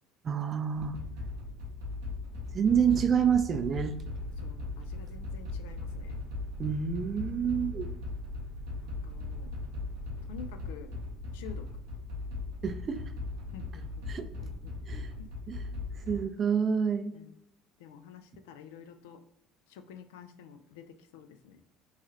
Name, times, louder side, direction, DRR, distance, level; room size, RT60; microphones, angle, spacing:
voice 1, 0.2-1.0 2.5-4.0 6.6-7.9 12.6-13.0 14.1-14.3 14.9-15.1 15.5-15.6 16.1-17.1, right 7 dB, 40° right, 8 dB, 0.4 m, -28 dB
sound 1, 0.8-16.2, left 3 dB, 80° right, 0.7 m, -38 dB
voice 2, 4.4-6.2 8.8-9.5 10.3-10.9 11.3-11.7 13.5-14.7 15.2-15.3 16.1-16.3 17.1-17.3 17.8-19.2 19.7-20.8 21.1-21.6, left 7 dB, 80° left, 8 dB, 0.3 m, -49 dB
3.1 x 2.3 x 2.8 m, 0.77 s
hypercardioid pair, 70°, 0 cm